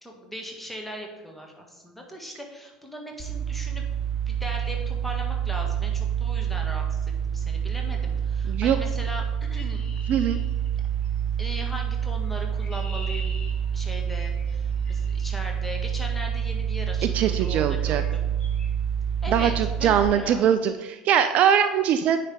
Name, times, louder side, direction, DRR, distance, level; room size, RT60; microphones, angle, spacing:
voice 1, 0.0-3.8 4.3-9.8 11.4-13.4 13.7-18.3 19.2-20.5, equal, 5° left, 1 dB, 1.5 m, -39 dB
sound 1, 3.2-20.1, right 8 dB, 10° right, 1.4 m, -28 dB
Chirp tweet, 9.6-11.2 12.2-15.4 16.5-16.7 17.3-17.6 17.8-18.1 18.4-18.7, left 3 dB, 35° left, 1.6 m, -45 dB
voice 2, 17.1-18.0 19.3-22.2, right 9 dB, 45° right, 10 dB, 0.3 m, -22 dB
9.4 x 3.3 x 4.8 m, 1.2 s
figure-of-eight pair, 65°, 3 cm